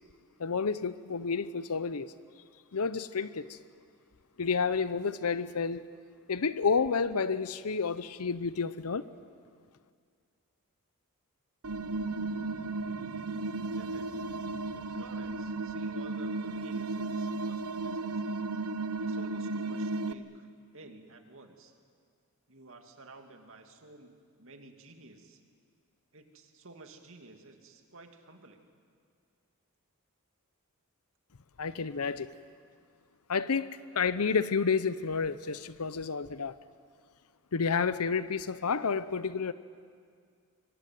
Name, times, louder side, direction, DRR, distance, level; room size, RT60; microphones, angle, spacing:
voice 1, 0.4-2.1 2.7-3.6 4.4-5.9 6.3-9.1 31.6-32.4 33.3-36.6 37.5-39.5, left 5 dB, 80° left, 14 dB, 0.8 m, -30 dB
sound 1, 11.6-20.1, right 3 dB, 80° right, 0.9 m, -34 dB
voice 2, 13.8-14.2 14.7-18.2 19.0-20.5 20.7-21.7 22.5-25.4 26.1-28.6, right 2 dB, 60° right, 5 dB, 2.6 m, -53 dB
25.5 x 23.0 x 9.4 m, 2.1 s
head